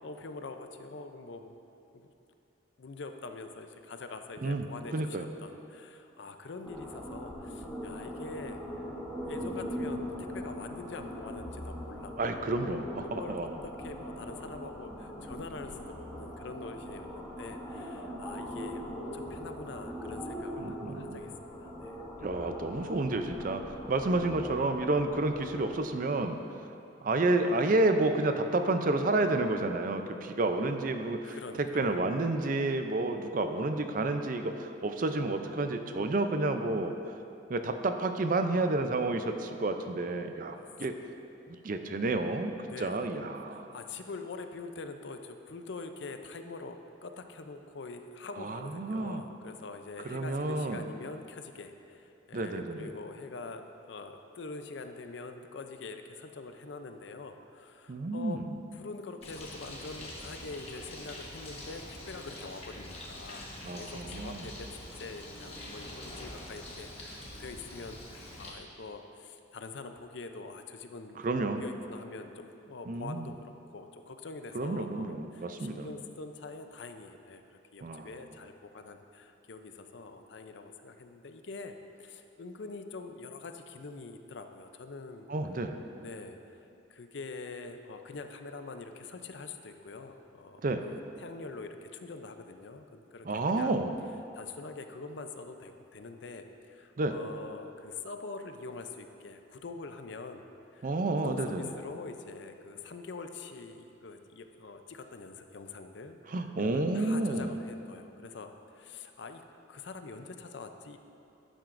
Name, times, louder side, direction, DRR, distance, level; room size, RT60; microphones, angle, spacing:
voice 1, 0.0-1.5 1.9-2.1 2.8-8.6 9.1-21.3 21.6-22.0 31.2-32.0 40.6-40.7 42.6-43.1 43.5-58.4 58.7-71.2 71.6-85.3 86.0-86.6 86.9-93.7 94.3-100.4 100.7-106.2 106.6-109.4 109.7-111.0, left 3 dB, 65° left, 7 dB, 0.5 m, -44 dB
voice 2, 4.9-5.2 12.2-13.6 20.6-21.1 22.2-26.4 27.0-36.9 37.5-41.0 41.6-42.5 42.8-43.7 48.4-49.2 50.0-50.8 52.3-52.9 57.9-58.5 63.6-64.5 71.2-71.6 72.9-73.3 74.5-75.9 77.8-78.1 85.3-85.8 90.6-90.8 93.2-93.9 97.0-97.2 100.8-101.7 106.3-107.5, right 2 dB, 45° right, 7 dB, 0.4 m, -30 dB
sound 1, 6.6-25.8, equal, ahead, 1.0 m, -41 dB
Bird, 59.2-68.5, left 1 dB, 30° left, 1.2 m, -45 dB
12.0 x 9.0 x 2.6 m, 2.8 s
head